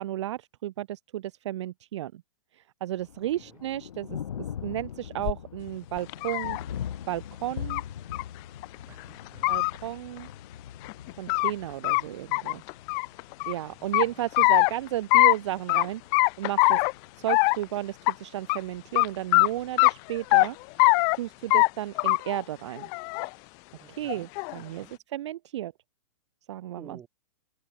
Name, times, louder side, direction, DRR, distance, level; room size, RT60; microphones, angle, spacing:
voice 1, 0.0-2.2 2.5-4.2 4.6-6.6 7.1-7.8 9.5-10.3 11.2-12.6 13.5-16.0 16.4-16.8 17.2-20.6 21.1-22.9 24.0-24.9 25.1-25.7 26.5-27.0, right 13 dB, 55° right, 0.5 m, -33 dB
Thunder, 2.9-20.9, left 9 dB, 80° left, 3.5 m, -43 dB
sound 1, 5.3-5.4 6.0-6.6 7.7-7.8 8.1-8.2 8.6-8.7 9.3-9.7 10.8-11.5 11.8-12.0 12.3-13.5 13.9-14.7 15.1-15.4 15.7-15.9 16.1-16.9 17.3-17.6 18.1-18.2 18.5-18.6 19.0-19.1 19.3-19.5 19.8-20.5 20.8-21.2 21.5-21.7 22.0-22.4 22.8-23.3 24.1-24.6, left 34 dB, 20° left, 0.4 m, -22 dB
voice 2, 8.9-9.5 13.7-14.2 23.8-24.3 24.7-25.0 26.8-27.1, right 8 dB, 15° right, 3.7 m, -52 dB
hypercardioid pair, 160°, 17 cm